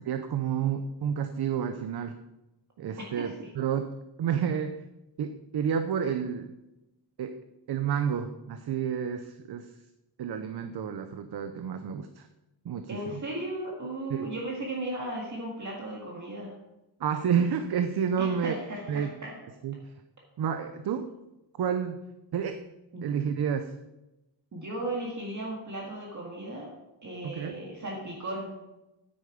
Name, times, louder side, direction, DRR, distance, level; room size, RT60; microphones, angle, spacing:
voice 1, 0.0-2.2 2.8-3.9 4.2-4.8 5.2-6.5 7.2-7.4 7.7-9.7 10.2-12.3 12.6-13.2 14.1-14.3 17.0-18.5 18.9-19.1 19.6-19.8 20.4-21.1 21.6-22.0 22.3-22.6 23.0-23.7 27.2-27.6, right 8 dB, 60° right, 9 dB, 0.7 m, -30 dB
voice 2, 3.2-3.5 12.9-16.5 18.2-19.3 22.9-23.1 24.5-26.7 27.0-28.5, right 1 dB, 40° right, -2 dB, 1.8 m, -36 dB
9.6 x 8.8 x 5.0 m, 0.96 s
wide cardioid pair, 175°, 44 cm